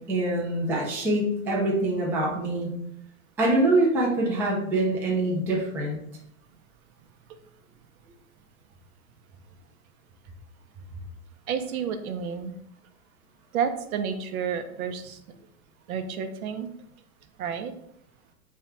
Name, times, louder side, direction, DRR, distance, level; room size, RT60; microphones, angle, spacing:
voice 1, 0.1-2.7 3.4-6.0, right 2 dB, 5° right, -4 dB, 0.4 m, -24 dB
voice 2, 11.5-12.5 13.5-15.2 15.9-16.7 17.4-17.7, right 7 dB, 70° right, 7 dB, 0.8 m, -30 dB
3.6 x 3.4 x 4.2 m, 0.74 s
supercardioid pair, 145°, 44 cm